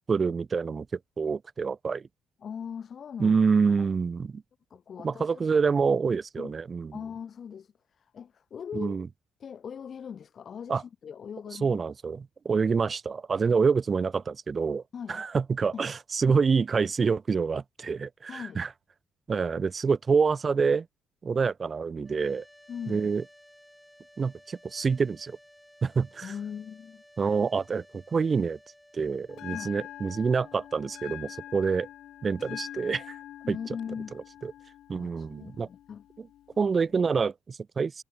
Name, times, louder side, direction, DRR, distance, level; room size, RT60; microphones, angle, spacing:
voice 1, 0.1-0.9 1.2-2.1 3.2-4.4 5.0-6.9 8.7-9.1 10.7-10.8 11.6-14.8 15.1-18.7 19.3-20.9 21.2-22.4 22.9-23.2 24.2-25.4 25.8-26.3 27.2-28.6 28.9-31.9 32.2-33.2 33.5-33.6 34.4-34.5 34.9-35.7 36.6-38.0, right 5 dB, 40° right, 0.3 m, -27 dB
voice 2, 2.4-3.4 3.7-3.9 4.7-5.4 6.4-6.6 6.9-9.1 9.4-11.8 14.9-15.3 15.7-15.9 16.3-16.4 18.3-18.6 22.7-23.1 26.2-27.0 29.5-29.7 32.5-32.6 33.4-34.1 34.9-36.0, left 7 dB, 50° left, 1.9 m, -40 dB
sound 1, 22.0-33.1, left 1 dB, 5° left, 5.8 m, -57 dB
Bell, 29.3-37.3, left 12 dB, 75° left, 1.1 m, -45 dB
cardioid pair, 90°, 0 cm